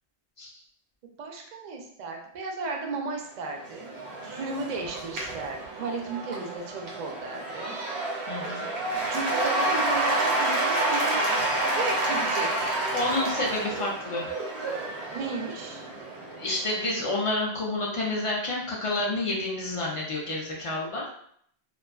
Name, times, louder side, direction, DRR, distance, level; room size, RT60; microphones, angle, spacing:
voice 1, 1.2-7.8 9.1-11.2 11.7-12.5 15.1-15.8, right 4 dB, 55° right, 1 dB, 0.5 m, -35 dB
Cheering / Applause / Crowd, 3.4-16.9, right 2 dB, 85° right, 0.9 m, -29 dB
voice 2, 8.3-8.6 12.9-14.2 16.3-21.0, left 2 dB, 50° left, -3 dB, 0.4 m, -29 dB
2.4 x 2.3 x 2.2 m, 0.65 s
omnidirectional pair, 1.1 m